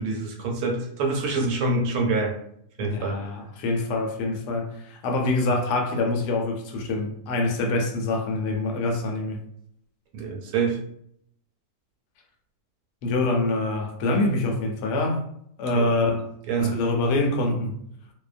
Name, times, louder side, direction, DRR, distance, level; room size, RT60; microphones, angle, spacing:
voice 1, 0.0-2.3 2.8-3.2 10.1-10.8 15.7-15.9 16.5-16.8, right 3 dB, 75° right, 1.0 m, -26 dB
voice 2, 2.8-9.4 13.0-15.2 15.6-16.2 16.6-17.8, left 2 dB, 80° left, 1.1 m, -25 dB
2.6 x 2.2 x 2.4 m
omnidirectional pair, 1.7 m